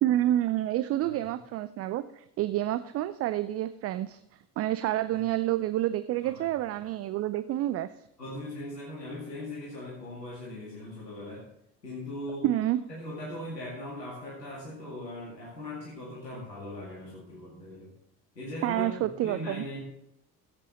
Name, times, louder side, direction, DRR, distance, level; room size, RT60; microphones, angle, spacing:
voice 1, 0.0-4.2 4.6-7.9 12.4-12.8 18.6-19.6, right 13 dB, 30° right, 13 dB, 0.4 m, -28 dB
voice 2, 8.2-11.4 11.8-12.5 12.9-17.9 18.3-18.9 19.2-19.8, left 1 dB, 80° left, -5 dB, 2.4 m, -39 dB
15.5 x 8.3 x 4.2 m, 0.80 s
figure-of-eight pair, 55°, 48 cm